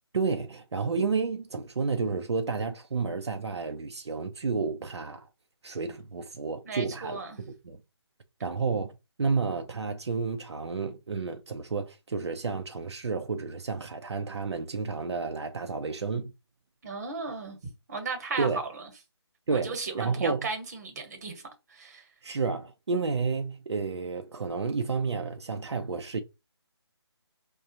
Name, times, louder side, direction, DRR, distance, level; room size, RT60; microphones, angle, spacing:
voice 1, 0.1-5.3 5.6-7.8 8.4-8.9 9.2-16.3 18.4-18.6 19.5-20.5 22.2-26.2, right 4 dB, 75° right, 0.6 m, -31 dB
voice 2, 6.6-7.4 16.8-17.6 17.9-18.5 19.5-21.4 21.7-22.0, right 4 dB, 35° right, 1.1 m, -35 dB
4.9 x 2.3 x 2.7 m
figure-of-eight pair, 160°, 14 cm